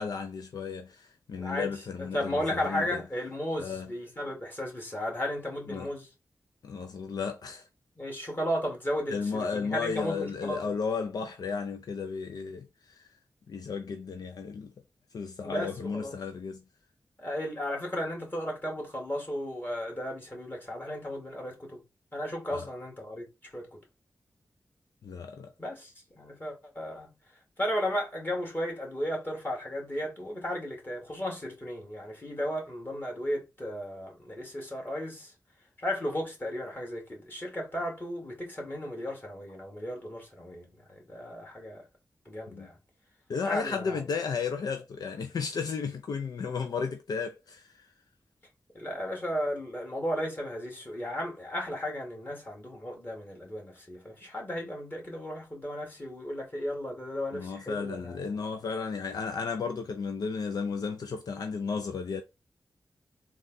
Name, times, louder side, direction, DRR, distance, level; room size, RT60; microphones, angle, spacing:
voice 1, 0.0-3.0 3.6-3.9 5.7-5.9 6.6-7.6 9.1-13.1 13.5-14.7 15.1-16.6 22.5-22.7 25.0-25.5 42.5-42.7 43.3-47.7 57.3-62.2, left 5 dB, 75° left, 0.4 m, -34 dB
voice 2, 1.3-1.7 2.0-6.1 8.0-10.7 15.4-16.2 17.2-21.8 22.1-23.2 23.5-23.8 25.6-27.1 27.6-35.3 35.8-41.8 42.3-42.8 43.4-44.0 48.7-58.7, equal, 30° left, 2.1 m, -35 dB
3.7 x 2.4 x 4.0 m
cardioid pair, 50°, 7 cm